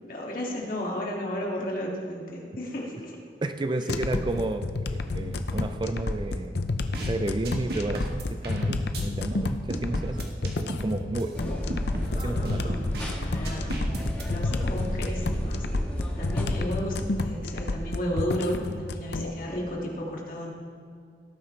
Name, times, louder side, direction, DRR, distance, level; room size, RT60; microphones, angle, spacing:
voice 1, 0.0-3.2 12.1-13.9 14.2-15.7 16.2-20.5, equal, 50° left, -2 dB, 2.2 m, -33 dB
voice 2, 3.4-6.6 7.0-11.3 12.1-12.7, right 2 dB, 25° right, 8 dB, 0.4 m, -32 dB
sound 1, 3.9-19.3, left 2 dB, 65° left, 0.7 m, -30 dB
sound 2, 6.9-7.1 7.4-9.0 9.7-10.9 11.2-11.3 11.7-13.1 13.4-14.2, right 1 dB, 60° right, 1.5 m, -34 dB
sound 3, 11.3-16.4, equal, 10° left, 1.5 m, -32 dB
17.5 x 9.6 x 3.3 m, 2.3 s
head